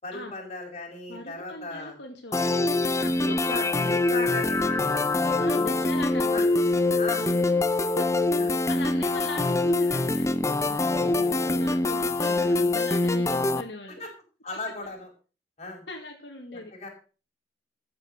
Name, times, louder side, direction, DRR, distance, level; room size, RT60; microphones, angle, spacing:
voice 1, 0.0-2.0 3.0-5.7 6.3-6.4 7.0-7.3 8.4-8.5 14.0-14.1 14.4-15.1 15.6-15.8 16.5-16.9, left 2 dB, 40° left, 0 dB, 5.5 m, -37 dB
voice 2, 1.1-2.4 3.0-3.4 3.8-4.0 5.4-6.5 7.2-7.6 8.0-8.1 8.7-14.0 15.9-16.9, left 2 dB, 80° left, 1 dB, 2.4 m, -39 dB
sound 1, 2.3-13.6, left 2 dB, 15° left, 0.8 m, -24 dB
14.0 x 6.9 x 6.5 m, 0.36 s
head